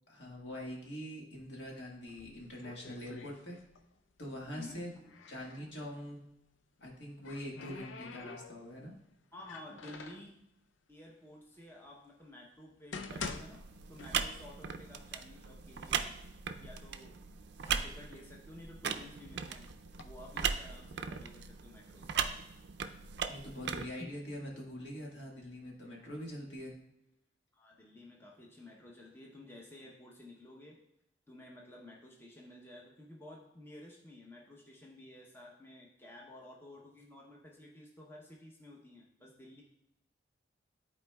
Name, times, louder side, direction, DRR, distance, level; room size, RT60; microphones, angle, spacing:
voice 1, 0.1-3.6 4.2-4.9 5.3-6.2 6.8-8.9 23.3-26.7, equal, 65° left, -2 dB, 1.7 m, -44 dB
sound 1, 2.1-4.0 4.2-5.7 6.8-8.8 9.4-10.3 11.1-11.2 11.9-12.0 12.6-14.6 14.9-15.0 15.7-15.8 16.2-16.8 17.4-19.0 19.7-20.0, left 4 dB, 85° left, 0.5 m, -47 dB
voice 2, 4.5-5.1 9.3-10.4 10.9-13.6 13.9-16.1 16.6-17.2 17.6-19.7 20.0-22.2 24.0-24.1 27.5-30.8 31.3-39.6, left 1 dB, 15° left, -2 dB, 0.8 m, -52 dB
sound 2, 13.1-23.9, right 7 dB, 60° right, 0.4 m, -39 dB
12.5 x 4.3 x 2.3 m, 0.86 s
head